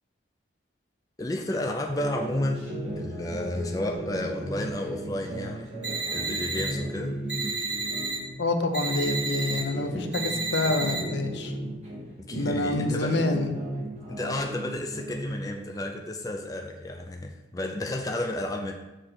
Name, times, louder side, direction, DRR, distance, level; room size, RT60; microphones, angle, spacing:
voice 1, 1.2-2.7 3.0-5.7 6.1-7.6 12.2-13.2 14.1-18.7, left 1 dB, 20° left, 3 dB, 0.4 m, -32 dB
sound 1, 1.8-8.3 8.7-12.0 12.3-15.4, equal, 35° right, 2.1 m, -35 dB
sound 2, 5.8-6.7 7.3-8.2 8.7-9.6 10.1-11.0, right 3 dB, 5° right, 1.9 m, -31 dB
voice 2, 8.4-11.5 12.3-13.6, left 2 dB, 70° left, 6 dB, 0.6 m, -27 dB
6.5 x 3.3 x 5.8 m, 1.0 s
head